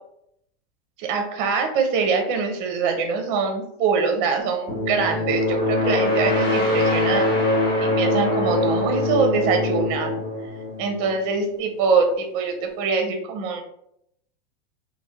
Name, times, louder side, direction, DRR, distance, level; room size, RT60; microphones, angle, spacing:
voice 1, 1.0-7.2 7.8-10.2 10.8-13.6, right 5 dB, 35° right, 4 dB, 0.5 m, -23 dB
sound 1, 4.7-11.3, left 1 dB, 15° left, 0.7 m, -23 dB
3.2 x 2.1 x 2.6 m, 0.74 s
supercardioid pair, 145°, 32 cm